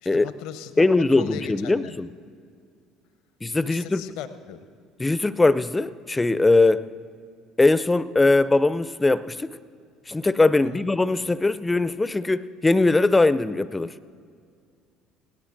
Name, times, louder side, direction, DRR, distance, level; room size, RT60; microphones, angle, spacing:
voice 1, 0.0-2.0 3.6-4.7 10.6-10.9, left 9 dB, 70° left, 13 dB, 0.6 m, -38 dB
voice 2, 0.8-2.1 3.4-4.0 5.0-6.9 7.6-9.6 10.1-13.9, left 2 dB, 15° left, 17 dB, 0.4 m, -21 dB
19.5 x 17.5 x 2.6 m, 2.2 s
hypercardioid pair, 60°, 0 cm